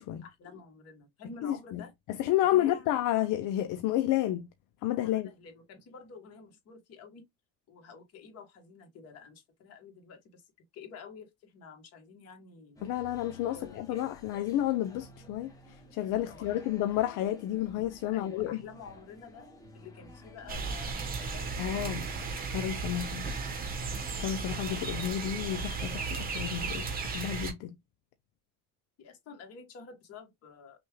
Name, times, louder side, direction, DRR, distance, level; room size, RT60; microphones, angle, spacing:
voice 1, 0.2-1.9 2.5-2.9 5.0-7.2 7.7-12.8 13.5-14.1 16.3-16.6 18.0-19.5 19.7-24.1 29.0-30.8, left 5 dB, 45° left, 1.6 m, -50 dB
voice 2, 1.4-1.8 2.2-4.5 4.8-5.3 12.8-18.6 21.6-22.1 22.5-23.3 24.2-27.8, left 13 dB, 65° left, 0.6 m, -31 dB
sound 1, 12.8-26.7, left 1 dB, 10° left, 0.9 m, -51 dB
sound 2, 20.5-27.5, right 4 dB, 25° right, 0.9 m, -35 dB
5.9 x 2.4 x 3.1 m
cardioid pair, 180°, 33 cm